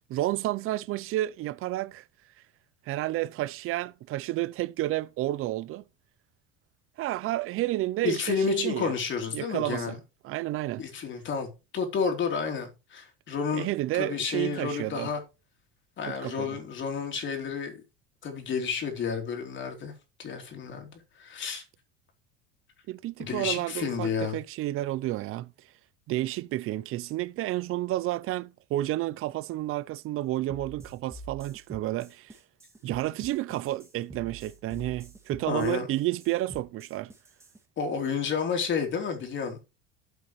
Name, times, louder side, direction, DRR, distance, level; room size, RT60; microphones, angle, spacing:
voice 1, 0.1-2.0 2.9-5.8 7.0-8.9 9.3-10.0 10.2-10.8 13.5-15.1 16.1-16.6 22.9-25.5 26.1-32.4 32.8-37.1, right 16 dB, 50° right, 0.7 m, -31 dB
voice 2, 8.0-10.0 10.8-11.5 11.7-13.7 13.9-15.2 16.0-17.8 18.2-19.9 20.2-20.9 21.2-21.6 23.2-24.4 35.5-35.9 37.8-39.6, left 6 dB, 40° left, 3.6 m, -30 dB
sound 1, 30.5-37.6, right 3 dB, 10° right, 2.4 m, -47 dB
12.5 x 8.0 x 3.2 m
supercardioid pair, 125°, 29 cm